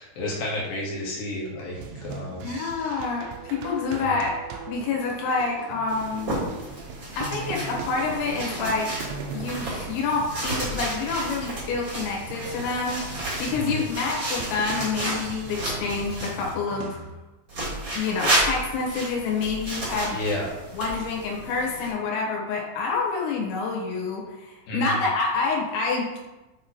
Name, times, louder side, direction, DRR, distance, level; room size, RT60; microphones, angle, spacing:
voice 1, 0.0-2.5 3.9-4.2 13.5-13.9 20.1-20.5 24.7-25.1, left 1 dB, 65° left, -4 dB, 2.5 m, -31 dB
sound 1, 1.8-17.1, right 5 dB, 80° right, 2.7 m, -39 dB
voice 2, 2.4-4.3 4.7-6.3 7.2-8.9 9.3-17.0 18.0-20.2 20.7-26.2, left 4 dB, 90° left, -1 dB, 4.0 m, -27 dB
sound 2, 5.9-16.5 17.5-21.9, right 1 dB, 40° right, 1.9 m, -32 dB
8.8 x 3.1 x 4.3 m, 1.1 s
omnidirectional pair, 5.8 m